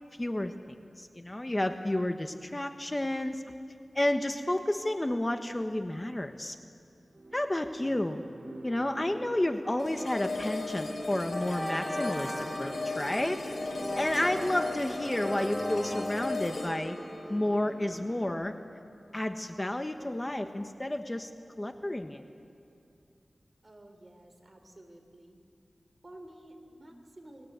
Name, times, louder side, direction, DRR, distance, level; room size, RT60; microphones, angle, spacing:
voice 1, 0.2-3.4 3.9-6.6 7.3-8.2 8.6-13.4 13.9-17.0 17.3-18.5 19.1-21.3 21.6-22.2, left 1 dB, 25° left, 6 dB, 1.3 m, -31 dB
sound 1, 7.1-18.3, right 1 dB, 50° right, 3.4 m, -46 dB
sound 2, 9.8-18.8, left 3 dB, 80° left, 4.9 m, -37 dB
sound 3, 11.3-18.1, equal, ahead, 0.8 m, -40 dB
voice 2, 23.6-25.4 26.0-27.5, right 1 dB, 35° right, 4 dB, 3.7 m, -51 dB
29.0 x 21.5 x 8.2 m, 2.6 s
wide cardioid pair, 75°, 0 cm